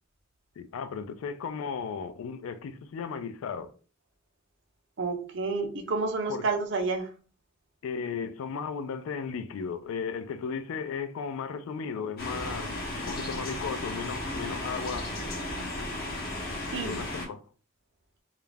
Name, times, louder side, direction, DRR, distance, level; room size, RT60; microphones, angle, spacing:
voice 1, 0.6-3.7 6.3-6.4 7.8-12.8 13.0-15.1 16.8-17.4, left 6 dB, 85° left, 0.3 m, -35 dB
voice 2, 5.0-7.1 16.7-16.9, right 4 dB, 60° right, 0.6 m, -29 dB
sound 1, 12.2-17.3, left 1 dB, 50° left, 0.7 m, -35 dB
2.4 x 2.1 x 3.2 m
head